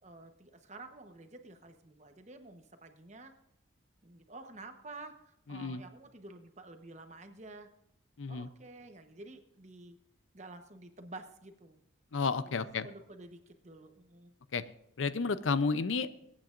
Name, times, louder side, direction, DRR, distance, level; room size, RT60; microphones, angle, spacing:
voice 1, 0.0-3.3 4.0-7.7 8.3-10.0 10.3-11.8 12.5-14.3, right 2 dB, 35° right, 6 dB, 1.1 m, -50 dB
voice 2, 5.5-5.8 8.2-8.5 12.1-12.9 14.5-14.6 15.0-16.1, left 4 dB, 90° left, 13 dB, 0.6 m, -31 dB
25.0 x 8.7 x 2.6 m, 0.80 s
head